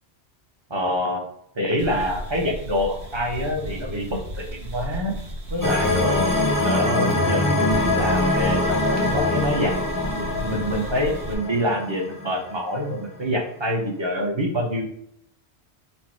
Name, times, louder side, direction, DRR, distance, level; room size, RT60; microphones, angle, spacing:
voice 1, 0.7-1.2 1.6-5.2 5.5-6.3 6.6-9.7 10.1-14.8, equal, 30° right, 1 dB, 0.6 m, -26 dB
sound 1, 1.8-6.8 7.1-11.3, right 1 dB, 80° right, 1.3 m, -34 dB
sound 2, 5.6-12.7, left 2 dB, 20° left, 0.6 m, -24 dB
4.3 x 2.0 x 4.4 m, 0.74 s
omnidirectional pair, 1.1 m